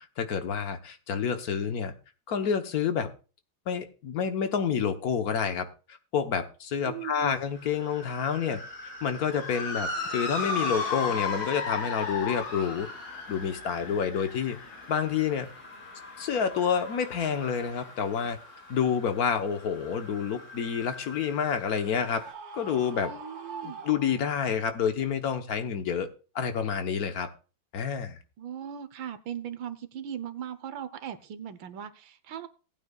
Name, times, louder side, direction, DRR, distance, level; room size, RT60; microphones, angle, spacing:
voice 1, 0.2-1.9 2.3-3.1 3.7-12.9 13.3-14.6 14.9-15.5 16.2-18.4 18.7-22.2 22.5-23.1 23.6-26.1 26.3-27.3 27.7-28.2, left 7 dB, 55° left, 1.3 m, -28 dB
voice 2, 6.8-7.4 23.1-23.8 28.4-32.5, right 9 dB, 75° right, 1.5 m, -39 dB
sound 1, 6.9-22.3, left 1 dB, 30° left, 1.2 m, -48 dB
Motor vehicle (road) / Siren, 9.3-17.8, left 4 dB, 75° left, 2.4 m, -35 dB
Screaming, 21.9-24.6, right 4 dB, 50° right, 1.5 m, -43 dB
18.5 x 8.9 x 2.3 m
omnidirectional pair, 2.2 m